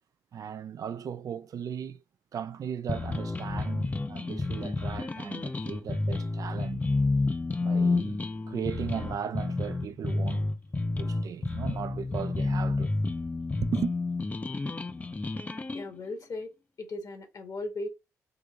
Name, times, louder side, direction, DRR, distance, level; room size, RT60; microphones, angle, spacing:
voice 1, 0.3-2.0 2.3-6.9 7.6-10.5 11.0-12.9 13.6-13.9, right 8 dB, 50° right, 0.4 m, -37 dB
sound 1, 2.9-15.8, left 3 dB, 20° left, 0.5 m, -30 dB
voice 2, 15.7-17.9, left 2 dB, 50° left, 1.4 m, -37 dB
3.8 x 2.8 x 3.4 m
hypercardioid pair, 45°, 8 cm